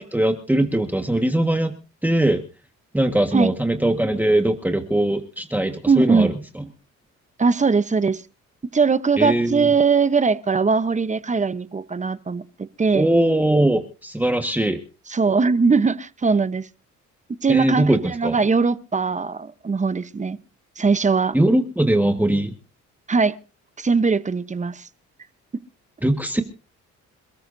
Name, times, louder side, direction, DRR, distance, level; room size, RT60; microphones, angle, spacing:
voice 1, 0.0-1.7 2.0-2.4 2.9-6.3 9.2-9.7 12.9-14.8 17.5-18.4 21.3-22.5 26.0-26.4, right 1 dB, 5° right, 1.6 m, -20 dB
voice 2, 5.9-6.3 7.4-8.2 8.7-12.4 12.8-13.1 15.1-16.7 17.4-20.4 20.8-21.3 23.1-23.4 23.8-24.9, right 4 dB, 25° right, 0.9 m, -20 dB
27.5 x 13.5 x 2.7 m
cardioid pair, 90°, 30 cm